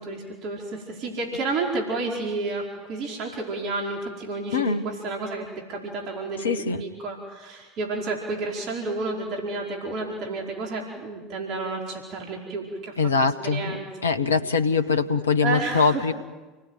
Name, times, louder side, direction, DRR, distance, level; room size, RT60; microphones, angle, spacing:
voice 1, 0.0-6.5 6.8-13.0 13.2-13.8 15.4-16.0, right 3 dB, 50° right, 0 dB, 4.9 m, -31 dB
voice 2, 4.5-4.8 6.4-6.8 13.0-13.8 14.0-16.1, left 5 dB, 80° left, 9 dB, 1.4 m, -23 dB
29.5 x 20.0 x 9.1 m, 1.2 s
figure-of-eight pair, 75°, 0 cm